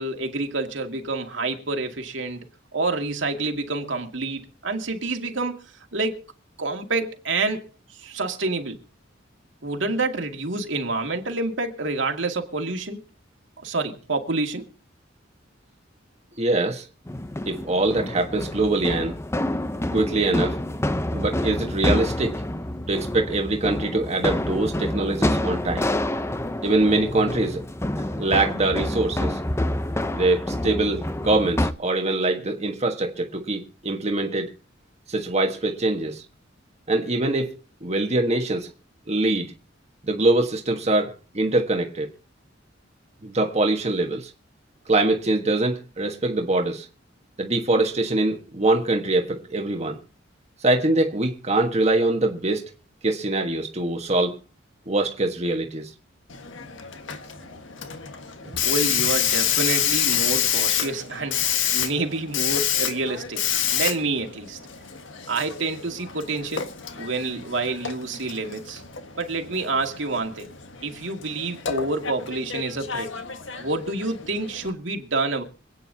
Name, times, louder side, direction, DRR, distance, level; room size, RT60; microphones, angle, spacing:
voice 1, 0.0-2.5 2.7-6.3 6.6-7.6 7.9-8.8 9.6-13.0 13.6-14.6 58.6-64.6 65.3-66.7 67.0-68.8 69.2-70.5 70.8-73.1 73.6-75.4, right 3 dB, 75° right, 2.3 m, -28 dB
voice 2, 16.4-16.9 17.5-19.2 19.9-20.6 21.1-22.4 22.9-25.9 26.6-27.6 28.1-29.4 30.1-34.5 35.1-36.2 36.9-38.7 39.1-39.5 40.0-42.1 43.2-44.3 44.9-46.9 47.4-50.0 50.6-52.7 53.0-54.4 54.9-55.9, right 2 dB, 35° right, 1.4 m, -23 dB
sound 1, 17.1-31.7, left 1 dB, 15° left, 0.7 m, -28 dB
Hiss, 56.3-74.7, left 9 dB, 80° left, 1.5 m, -28 dB
26.5 x 9.3 x 2.8 m
head